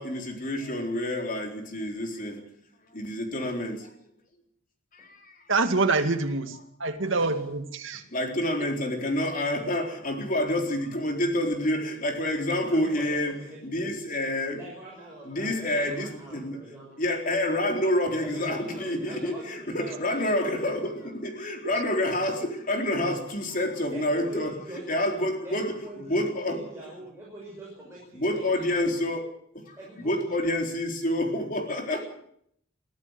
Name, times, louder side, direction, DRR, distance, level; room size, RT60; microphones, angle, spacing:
voice 1, 0.0-2.4 2.9-3.9 4.9-5.4 8.1-13.3 13.6-14.6 15.2-16.6 17.0-26.6 28.1-29.3 29.5-32.0, left 1 dB, 40° left, 3 dB, 4.1 m, -28 dB
voice 2, 5.5-8.0 8.6-8.7, right 3 dB, 70° right, 7 dB, 2.2 m, -26 dB
voice 3, 12.7-13.6 14.5-17.0 18.2-21.1 23.9-28.9 29.8-30.4 31.9-32.0, right 1 dB, 15° right, -5 dB, 6.1 m, -44 dB
23.0 x 14.5 x 8.3 m, 0.71 s
head